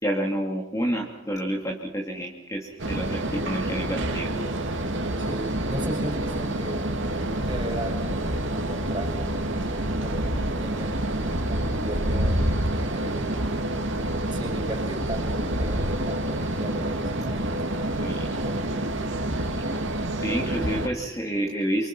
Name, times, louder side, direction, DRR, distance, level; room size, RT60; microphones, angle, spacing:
voice 1, 0.0-4.3 18.0-18.2 20.2-21.9, equal, 15° left, 1 dB, 2.4 m, -29 dB
sound 1, 2.8-20.9, right 1 dB, 55° right, 2.6 m, -27 dB
voice 2, 5.2-6.8 7.1-9.3 10.0-13.4 14.3-18.6, right 1 dB, 20° right, 3 dB, 6.7 m, -37 dB
28.5 x 25.0 x 5.9 m, 0.94 s
head